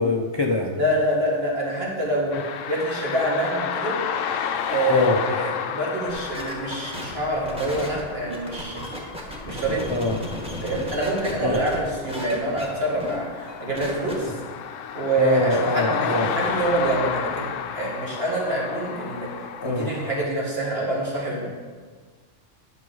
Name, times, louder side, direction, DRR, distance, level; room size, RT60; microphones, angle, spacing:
voice 1, 0.0-0.8 4.9-5.2 9.9-10.2 11.4-11.7 14.3-14.4 15.2-16.3 19.6-19.9, left 2 dB, 40° left, 1 dB, 0.3 m, -23 dB
voice 2, 0.8-2.3 2.7-4.0 4.7-8.9 9.4-9.8 10.6-14.3 14.9-17.5 17.7-19.3 19.6-21.5, right 1 dB, 50° right, -4 dB, 2.1 m, -26 dB
sound 1, 2.3-20.3, left 7 dB, 85° left, 0.9 m, -32 dB
sound 2, 6.1-11.8 12.1-12.7 13.0-13.2 13.5-14.1, equal, 5° right, 1.3 m, -35 dB
10.5 x 6.0 x 3.9 m, 1.5 s
omnidirectional pair, 1.3 m